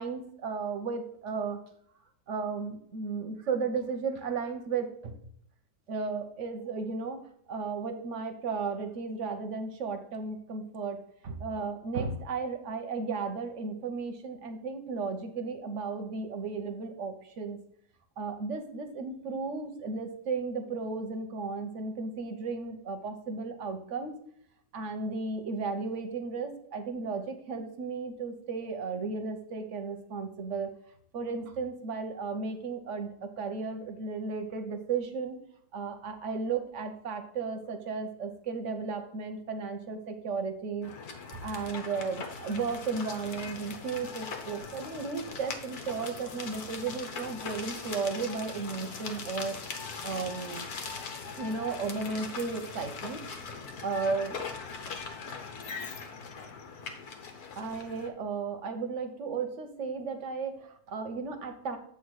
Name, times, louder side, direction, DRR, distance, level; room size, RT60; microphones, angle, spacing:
voice 1, 0.0-1.6 2.3-5.2 5.9-7.2 7.5-11.0 11.2-17.6 18.2-24.1 24.7-30.7 31.1-35.4 35.7-40.9 41.3-49.6 50.0-50.6 51.4-53.2 53.8-54.4 57.6-61.8, right 4 dB, 50° right, 6 dB, 1.1 m, -34 dB
sound 1, 40.8-58.1, left 5 dB, 65° left, 1.5 m, -41 dB
7.9 x 3.6 x 6.3 m, 0.67 s
omnidirectional pair, 1.8 m